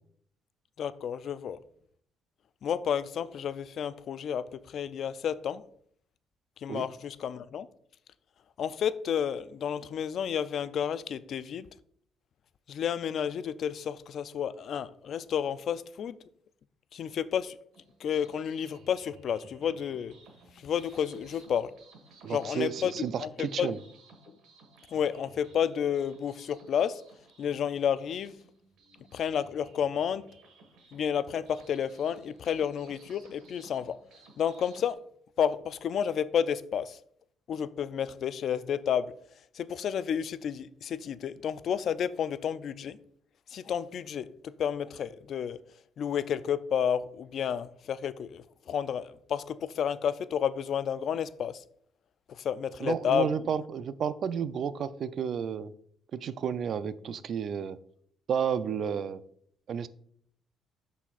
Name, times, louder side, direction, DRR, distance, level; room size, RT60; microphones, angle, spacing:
voice 1, 0.8-1.6 2.6-5.6 6.6-7.7 8.6-11.7 12.7-16.1 16.9-17.6 18.0-20.1 20.6-21.7 22.3-23.7 24.9-27.0 27.4-28.3 29.1-30.2 30.9-34.0 34.4-35.0 35.4-37.0 37.5-39.1 39.6-43.0 43.5-45.6 46.0-51.6 52.4-53.3, left 8 dB, 60° left, 0.3 m, -31 dB
sound 1, 17.7-34.9, right 3 dB, 80° right, 1.6 m, -57 dB
voice 2, 22.2-23.8 52.8-55.7 56.1-57.8 58.3-59.2 59.7-59.9, right 7 dB, 55° right, 0.4 m, -32 dB
12.0 x 4.1 x 2.4 m
cardioid pair, 95°, 0 cm